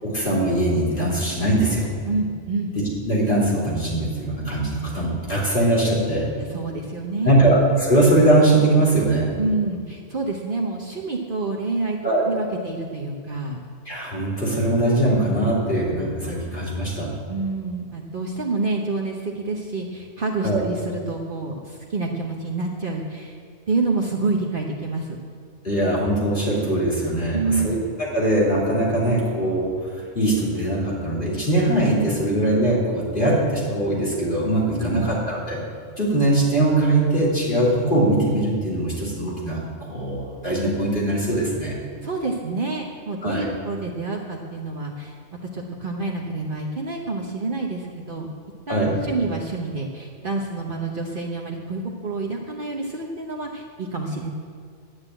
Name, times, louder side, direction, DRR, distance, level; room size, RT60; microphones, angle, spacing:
voice 1, 0.0-1.9 2.8-6.3 7.2-9.3 12.0-12.3 13.8-17.1 20.4-20.6 25.6-35.6 36.0-39.6 39.9-41.7 43.2-43.5 48.7-49.0, right 1 dB, 45° left, -6 dB, 3.3 m, -21 dB
voice 2, 2.1-2.7 6.5-7.3 9.4-12.0 12.3-13.6 17.3-23.3 23.7-25.2 27.3-27.8 34.7-35.1 42.0-48.3 48.7-54.3, right 3 dB, 50° right, -1 dB, 1.2 m, -28 dB
11.5 x 8.1 x 9.0 m, 2.1 s
omnidirectional pair, 1.2 m